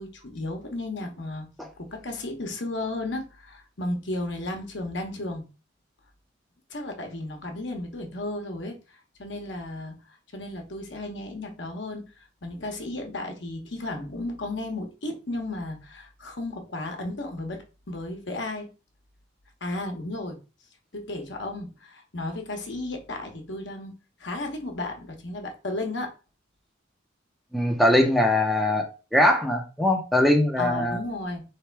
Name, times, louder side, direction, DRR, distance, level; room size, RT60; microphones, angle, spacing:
voice 1, 0.0-1.5 1.8-5.5 6.7-8.7 9.2-9.9 10.3-12.0 12.4-18.7 19.6-20.4 20.9-23.9 24.2-26.1 30.6-31.4, left 2 dB, 65° left, 1.1 m, -34 dB
voice 2, 27.5-31.0, left 1 dB, ahead, 0.6 m, -22 dB
3.4 x 3.3 x 4.6 m
head